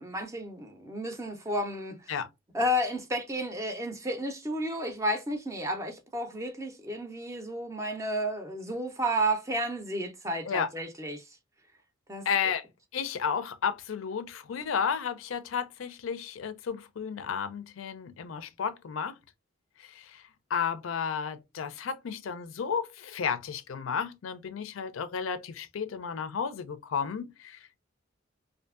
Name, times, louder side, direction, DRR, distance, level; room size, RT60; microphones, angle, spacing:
voice 1, 0.0-2.2 2.5-11.2 12.1-12.3, equal, 15° right, 0.4 m, -32 dB
voice 2, 12.3-12.6 12.9-19.2 19.8-20.2 20.5-27.8, left 6 dB, 85° left, 0.4 m, -32 dB
2.6 x 2.5 x 2.4 m
head